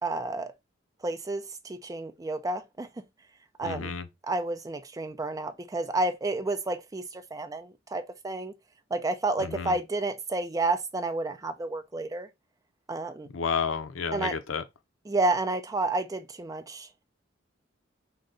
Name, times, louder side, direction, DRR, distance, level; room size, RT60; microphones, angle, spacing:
voice 1, 0.0-0.5 1.0-2.9 3.6-3.9 4.3-8.5 8.9-12.3 12.9-13.3 14.1-14.3 15.1-17.0, right 2 dB, 20° right, 0.4 m, -30 dB
voice 2, 3.6-4.1 9.4-9.8 13.3-14.6, left 6 dB, 90° left, 0.6 m, -31 dB
3.7 x 2.2 x 3.7 m
head